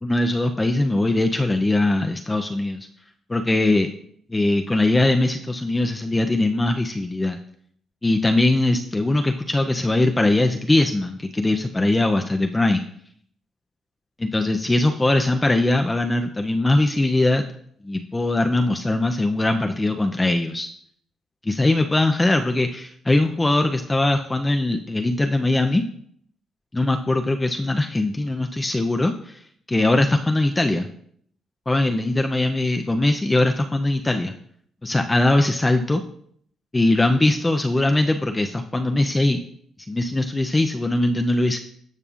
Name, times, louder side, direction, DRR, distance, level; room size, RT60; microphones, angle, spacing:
voice 1, 0.0-2.9 3.3-3.9 4.3-7.4 8.0-12.8 14.2-17.4 17.8-20.7 21.4-25.8 26.7-29.4 29.7-30.9 31.7-34.3 34.8-36.0 36.7-39.4 39.9-41.6, left 2 dB, 15° left, 5 dB, 0.5 m, -21 dB
14.0 x 5.3 x 2.5 m, 0.64 s
cardioid pair, 90°, 0 cm